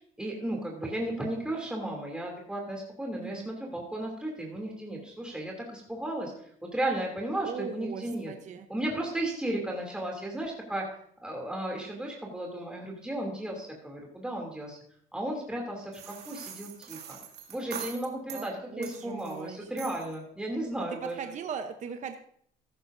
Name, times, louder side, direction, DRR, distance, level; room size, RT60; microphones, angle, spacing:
voice 1, 0.2-8.3 8.7-10.9 11.2-14.8 15.1-17.2 17.5-21.3, right 1 dB, 5° right, -1 dB, 2.8 m, -34 dB
voice 2, 7.4-8.7 18.3-19.7 21.0-22.2, right 6 dB, 45° right, 7 dB, 0.8 m, -39 dB
sound 1, 15.9-18.5 18.8-19.4 19.8-20.2, right 8 dB, 75° right, 2.4 m, -43 dB
14.5 x 11.5 x 2.7 m, 0.65 s
cardioid pair, 110°, 17 cm